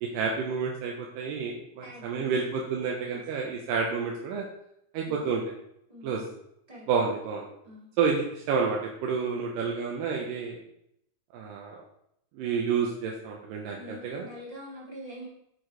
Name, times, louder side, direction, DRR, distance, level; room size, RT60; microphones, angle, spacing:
voice 1, 0.0-4.4 4.9-5.4 6.0-6.2 6.9-7.5 8.0-10.6 11.3-11.8 12.3-14.2, right 5 dB, 80° right, 0 dB, 2.2 m, -29 dB
voice 2, 1.8-2.6 3.1-3.2 5.0-5.3 5.9-6.3 6.7-6.8 7.6-7.9 13.7-15.3, equal, 25° right, -6 dB, 0.7 m, -45 dB
6.6 x 4.6 x 4.4 m, 0.77 s
omnidirectional pair, 4.4 m